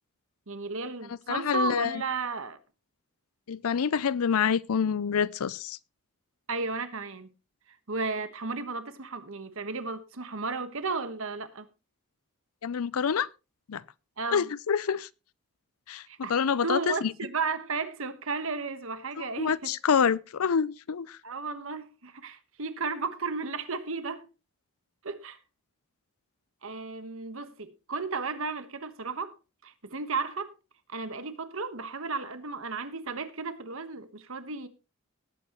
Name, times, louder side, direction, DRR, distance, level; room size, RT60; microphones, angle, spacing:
voice 1, 0.5-2.6 6.5-7.3 7.9-11.7 14.2-14.5 16.1-16.3 16.6-19.6 21.2-24.2 25.0-25.4 26.6-29.3 29.6-30.5 30.9-34.7, right 4 dB, 65° right, 1.3 m, -34 dB
voice 2, 1.3-2.0 3.5-5.8 12.6-13.3 13.7-13.8 14.3-15.1 15.9-17.1 19.4-21.2, left 7 dB, 70° left, 0.5 m, -27 dB
18.5 x 8.5 x 3.0 m
head